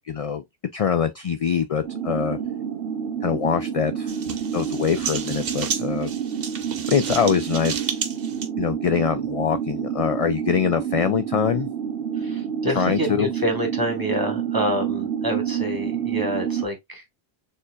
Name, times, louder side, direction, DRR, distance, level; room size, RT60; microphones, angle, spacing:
voice 1, 0.1-0.4 0.7-2.4 3.2-4.1 4.5-6.1 6.9-7.8 8.6-11.7 12.8-13.3, left 7 dB, 55° left, 0.4 m, -23 dB
sound 1, 1.8-16.7, right 8 dB, 90° right, 1.0 m, -29 dB
sound 2, 4.1-8.5, right 6 dB, 65° right, 0.9 m, -32 dB
voice 2, 12.1-17.0, equal, 20° right, 1.3 m, -27 dB
6.5 x 2.8 x 2.3 m
omnidirectional pair, 1.1 m